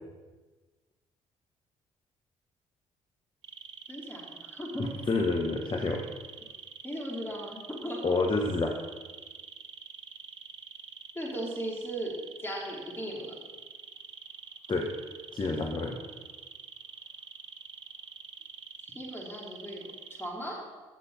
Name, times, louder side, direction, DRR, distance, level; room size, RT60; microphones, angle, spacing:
sound 1, 3.4-20.3, right 7 dB, 80° right, 0.7 m, -46 dB
voice 1, 3.9-4.9 6.8-8.0 11.1-12.1 12.4-13.3 18.8-20.6, equal, 15° left, -3 dB, 4.4 m, -37 dB
voice 2, 4.8-6.0 8.0-8.8 14.7-14.9 15.3-16.0, left 3 dB, 30° left, 1 dB, 1.4 m, -28 dB
17.0 x 6.6 x 5.5 m, 1.3 s
figure-of-eight pair, 45°, 16 cm